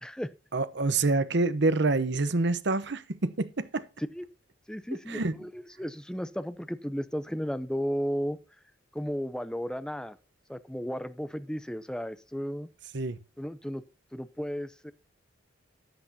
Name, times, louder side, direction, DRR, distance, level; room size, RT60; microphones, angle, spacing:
voice 1, 0.5-3.8 5.1-5.3 12.9-13.2, right 3 dB, 60° right, 0.9 m, -27 dB
voice 2, 4.7-8.4 8.9-10.2 10.5-12.7 13.4-13.8 14.1-14.9, equal, 5° left, 0.6 m, -34 dB
14.0 x 10.5 x 2.8 m
head